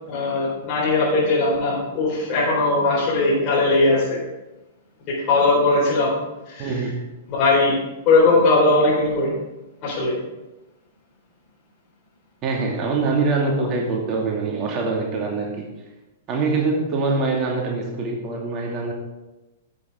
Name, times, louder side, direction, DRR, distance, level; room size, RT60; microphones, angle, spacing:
voice 1, 0.1-4.2 5.1-6.1 6.4-6.7 7.3-7.7 8.1-9.3 9.8-10.1, left 2 dB, 35° left, -8 dB, 4.5 m, -19 dB
voice 2, 6.6-6.9 12.4-15.7 16.3-18.9, right 3 dB, 30° right, -1 dB, 2.3 m, -24 dB
17.0 x 7.7 x 3.7 m, 1.0 s
figure-of-eight pair, 105°, 0 cm